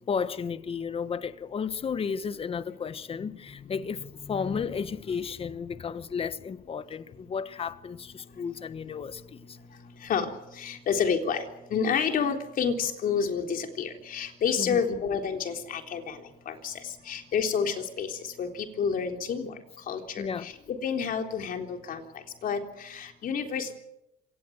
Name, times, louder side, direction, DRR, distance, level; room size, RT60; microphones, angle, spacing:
voice 1, 0.1-9.6 14.6-14.8 20.2-20.5, left 6 dB, 35° left, 1.3 m, -33 dB
voice 2, 10.0-11.5 11.7-16.2 16.5-19.5 19.9-22.0 22.4-23.8, left 6 dB, 55° left, 3.8 m, -29 dB
27.0 x 18.0 x 8.1 m
cardioid pair, 110°, 17 cm